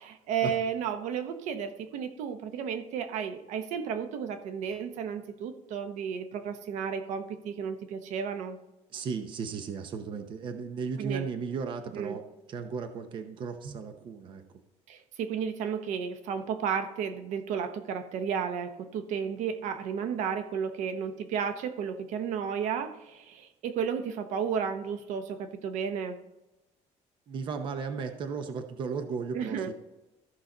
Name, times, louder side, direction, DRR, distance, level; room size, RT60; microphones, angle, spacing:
voice 1, 0.0-8.6 11.0-11.2 11.9-12.2 13.6-13.8 14.9-26.2 29.3-29.7, right 7 dB, 75° right, 9 dB, 0.9 m, -33 dB
voice 2, 8.9-12.2 12.5-14.4 27.3-29.7, right 5 dB, 40° right, 7 dB, 0.8 m, -35 dB
14.0 x 5.8 x 3.9 m, 0.99 s
cardioid pair, 175°, 13 cm